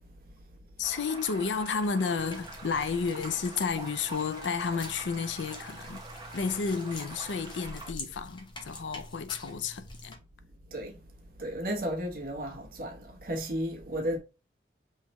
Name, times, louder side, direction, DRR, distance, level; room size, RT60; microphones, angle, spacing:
voice 1, 0.8-6.0 6.3-10.2, left 5 dB, 90° left, 0.5 m, -31 dB
sound 1, 0.8-7.9, right 3 dB, 25° right, 0.9 m, -45 dB
sound 2, 2.2-10.1, left 2 dB, 25° left, 0.9 m, -47 dB
sound 3, 2.2-7.7, right 1 dB, ahead, 1.7 m, -54 dB
voice 2, 10.7-11.1 11.4-14.2, equal, 50° right, 1.1 m, -34 dB
5.6 x 3.1 x 3.0 m
head